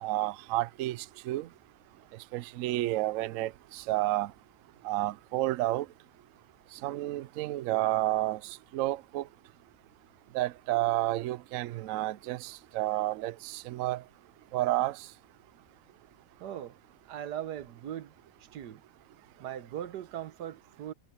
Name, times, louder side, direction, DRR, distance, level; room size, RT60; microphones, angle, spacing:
voice 1, 0.0-1.5 2.3-4.3 4.8-5.9 6.8-8.4 8.7-9.2 10.3-14.0 14.5-15.0, right 16 dB, 70° right, 0.8 m, -30 dB
voice 2, 16.4-16.8 17.1-18.1 18.5-18.8 19.4-20.9, right 10 dB, 85° right, 1.5 m, -39 dB
omnidirectional pair, 1.7 m